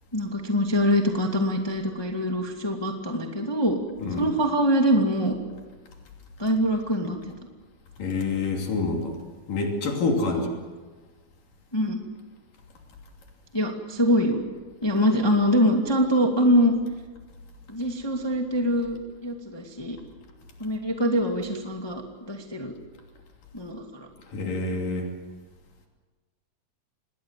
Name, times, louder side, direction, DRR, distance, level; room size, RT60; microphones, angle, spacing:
voice 1, 0.1-3.8 4.2-5.3 6.4-7.3 10.3-10.4 11.7-12.0 13.5-14.4 14.8-16.7 17.7-20.0 20.6-22.7 23.5-24.1, equal, 10° left, 2 dB, 1.8 m, -24 dB
voice 2, 8.0-9.2 9.5-10.5 24.3-25.1, left 3 dB, 85° left, 1 dB, 4.7 m, -27 dB
27.5 x 21.0 x 7.6 m, 1.3 s
omnidirectional pair, 3.8 m